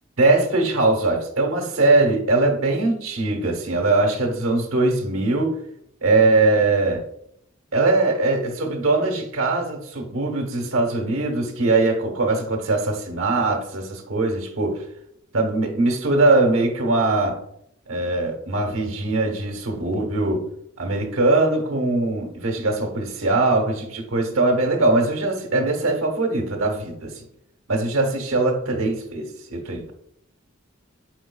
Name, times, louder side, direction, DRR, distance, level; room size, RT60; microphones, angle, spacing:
voice 1, 0.2-5.6 6.0-7.0 7.7-14.8 15.3-17.4 17.9-20.5 20.8-27.2 27.7-29.9, right 2 dB, 75° right, 3 dB, 1.0 m, -21 dB
4.6 x 4.6 x 2.3 m, 0.74 s
head